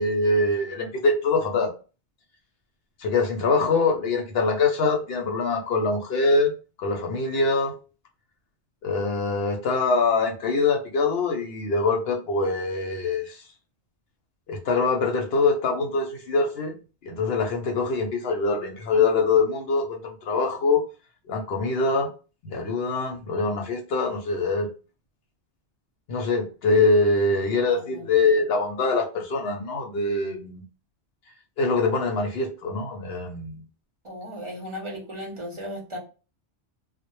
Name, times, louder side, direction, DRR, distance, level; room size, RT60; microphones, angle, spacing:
voice 1, 0.0-1.7 3.0-6.5 6.8-7.7 8.8-13.4 14.5-16.7 17.0-20.8 21.3-22.1 22.4-24.7 26.1-30.6 31.6-33.6, left 3 dB, 65° left, 0.7 m, -24 dB
voice 2, 27.7-28.0 34.0-36.0, equal, 35° right, 0.6 m, -36 dB
2.1 x 2.1 x 2.9 m
omnidirectional pair, 1.2 m